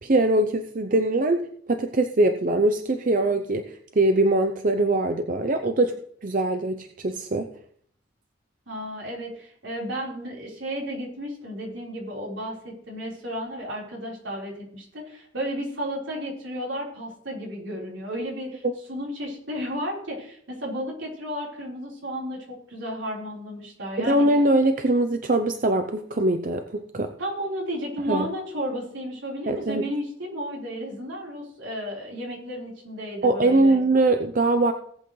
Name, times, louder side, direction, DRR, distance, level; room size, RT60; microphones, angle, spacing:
voice 1, 0.0-1.4 1.7-3.6 4.0-5.9 6.2-7.5 18.6-18.7 24.0-27.1 28.1-28.3 29.5-29.8 33.2-34.7, right 2 dB, 45° right, 7 dB, 0.6 m, -22 dB
voice 2, 8.7-18.6 18.9-24.2 27.2-33.8, equal, 80° right, -2 dB, 4.2 m, -33 dB
18.5 x 8.2 x 3.2 m, 0.63 s
head